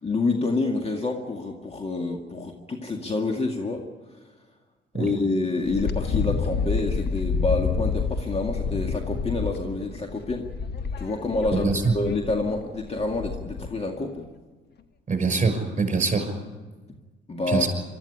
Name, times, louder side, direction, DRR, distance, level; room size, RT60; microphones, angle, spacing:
voice 1, 0.0-3.9 4.9-10.5 11.0-14.3 17.3-17.7, left 3 dB, 30° left, 3 dB, 2.1 m, -28 dB
Wind, 5.7-13.8, left 5 dB, 55° left, 1.4 m, -29 dB
voice 2, 11.5-11.9 15.1-16.3 17.5-17.7, right 4 dB, 35° right, 6 dB, 5.9 m, -23 dB
24.0 x 13.5 x 10.0 m, 1.3 s
cardioid pair, 90°, 20 cm